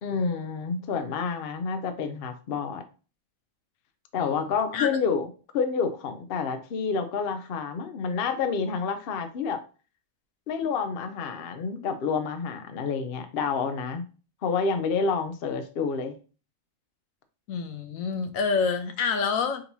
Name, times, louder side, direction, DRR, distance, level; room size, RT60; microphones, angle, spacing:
voice 1, 0.0-2.8 4.1-9.6 10.5-14.1 14.4-16.2, left 5 dB, 60° left, 7 dB, 0.6 m, -29 dB
voice 2, 4.2-4.9 17.5-19.6, left 5 dB, 75° left, 8 dB, 1.1 m, -28 dB
4.4 x 3.9 x 2.7 m, 0.35 s
omnidirectional pair, 1.5 m